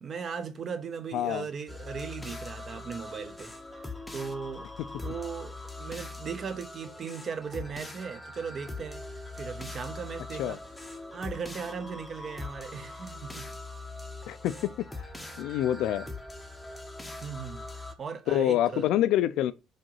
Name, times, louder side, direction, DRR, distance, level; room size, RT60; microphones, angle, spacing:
voice 1, 0.0-3.5 3.8-4.7 5.0-9.1 9.3-10.6 11.1-13.5 17.2-17.7 18.0-18.9, right 6 dB, 30° right, 0.9 m, -38 dB
voice 2, 1.1-1.5 10.4-10.6 14.3-14.5 15.4-16.1 18.3-19.5, left 12 dB, 60° left, 0.6 m, -26 dB
sound 1, 1.7-17.9, left 2 dB, 5° left, 0.9 m, -42 dB
5.4 x 5.0 x 5.6 m
cardioid pair, 170°, 0 cm